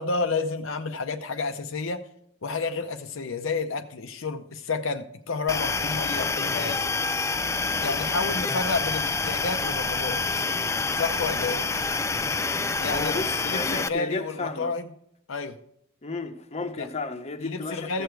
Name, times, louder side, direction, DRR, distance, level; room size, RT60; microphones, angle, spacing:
voice 1, 0.0-2.0 2.4-6.9 7.8-10.4 10.9-11.6 12.8-13.1 13.4-14.9 15.3-15.6 16.8-16.9 17.4-18.0, left 4 dB, 70° left, 0.7 m, -30 dB
sound 1, 5.5-13.9, left 4 dB, 15° left, 0.3 m, -27 dB
voice 2, 12.8-14.7 16.0-18.0, left 3 dB, 35° left, 1.0 m, -33 dB
15.0 x 6.8 x 4.6 m
head